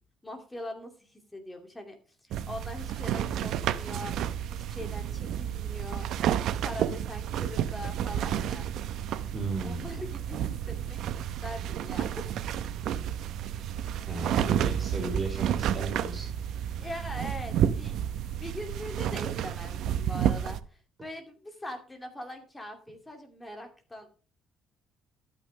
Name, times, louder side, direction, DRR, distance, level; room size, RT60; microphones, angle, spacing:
voice 1, 0.2-6.1 6.6-8.7 9.6-12.3 16.8-18.1 18.4-24.1, left 1 dB, 10° left, 4 dB, 2.4 m, -42 dB
sound 1, 2.3-20.6, right 10 dB, 65° right, 0.8 m, -31 dB
voice 2, 9.3-9.9 14.1-16.3, right 3 dB, 20° right, -1 dB, 3.4 m, -35 dB
12.5 x 8.7 x 3.2 m, 0.37 s
cardioid pair, 150°, 0 cm